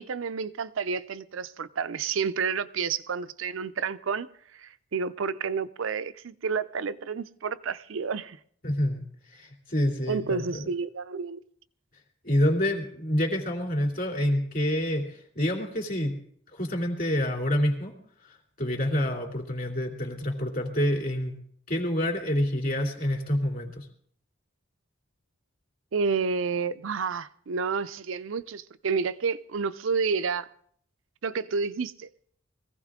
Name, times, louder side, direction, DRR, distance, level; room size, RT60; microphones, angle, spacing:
voice 1, 0.0-4.3 4.6-8.4 10.1-11.4 25.9-30.5 31.2-32.1, right 5 dB, 70° right, 0.5 m, -30 dB
voice 2, 8.6-10.7 12.2-16.1 16.5-17.9 18.2-21.4 21.7-23.9, left 1 dB, 45° left, 2.9 m, -27 dB
22.0 x 15.5 x 3.7 m
head